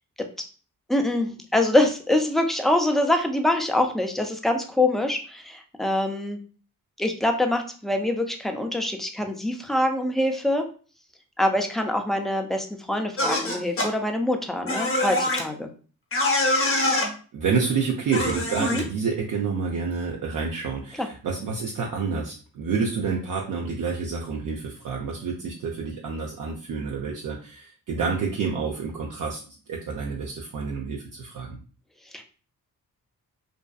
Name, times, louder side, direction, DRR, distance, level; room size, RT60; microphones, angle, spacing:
voice 1, 0.9-6.4 7.0-10.7 11.4-15.7 18.6-18.8 21.0-21.1 32.1-32.2, left 1 dB, ahead, 4 dB, 0.4 m, -24 dB
sound 1, 13.2-13.9 14.7-15.4 16.1-17.1 18.1-18.8, left 1 dB, 35° left, 0.9 m, -24 dB
voice 2, 16.8-29.4 29.7-31.6, right 5 dB, 60° right, -1 dB, 0.5 m, -29 dB
2.6 x 2.2 x 2.2 m, 0.39 s
supercardioid pair, 55°, 37 cm